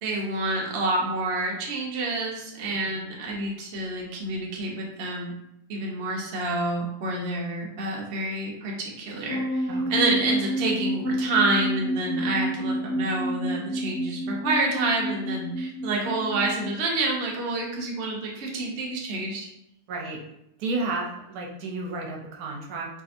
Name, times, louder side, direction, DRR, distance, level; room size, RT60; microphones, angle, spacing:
voice 1, 0.0-5.3 5.7-19.5, right 2 dB, 55° right, -2 dB, 0.8 m, -28 dB
sound 1, 9.3-16.7, right 1 dB, 60° left, 1.0 m, -29 dB
voice 2, 9.7-10.0 19.9-20.2 20.6-22.9, right 3 dB, 80° right, -1 dB, 1.1 m, -32 dB
2.7 x 2.6 x 2.4 m, 0.83 s
omnidirectional pair, 1.6 m